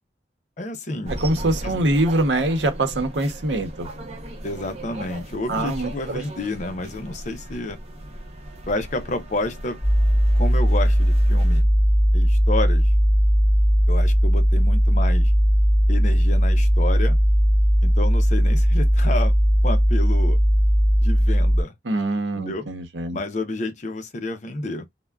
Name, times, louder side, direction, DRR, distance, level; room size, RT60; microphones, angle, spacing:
voice 1, 0.6-1.2 1.6-1.7 4.4-7.8 8.7-9.8 10.3-11.6 12.1-12.9 13.9-15.3 15.9-17.2 17.8-19.3 19.6-20.4 21.0-21.7 22.3-22.7 23.1-24.9, left 2 dB, 40° left, 0.6 m, -30 dB
sound 1, 1.0-11.6, right 1 dB, 35° right, 0.7 m, -37 dB
voice 2, 1.2-3.9 5.5-6.2 21.8-23.2, right 1 dB, 80° right, 0.8 m, -24 dB
sound 2, 9.8-21.6, equal, 15° right, 1.5 m, -18 dB
3.5 x 2.1 x 2.2 m
head